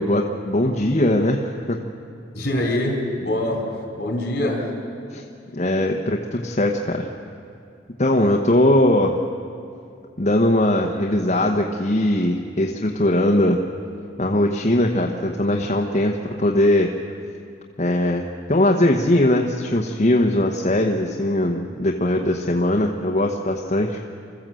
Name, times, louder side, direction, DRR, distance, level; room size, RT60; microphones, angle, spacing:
voice 1, 0.0-1.8 5.1-5.2 5.5-7.1 8.0-9.2 10.2-13.6 14.2-16.9 17.8-24.0, left 1 dB, 40° left, 0 dB, 1.0 m, -20 dB
voice 2, 2.3-3.7 3.9-4.7, left 1 dB, 55° left, -1 dB, 4.8 m, -24 dB
26.0 x 14.0 x 7.7 m, 2.5 s
head